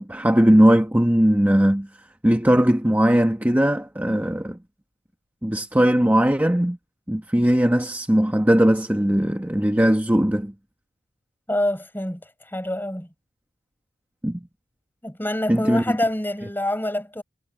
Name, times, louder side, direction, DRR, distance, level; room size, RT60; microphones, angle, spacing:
voice 1, 0.0-1.9 2.2-4.6 5.4-6.8 7.1-10.5 14.2-14.4 15.5-16.0, equal, 10° right, 1.1 m, -19 dB
voice 2, 11.5-13.1 15.0-17.2, left 1 dB, 10° left, 7.5 m, -26 dB
head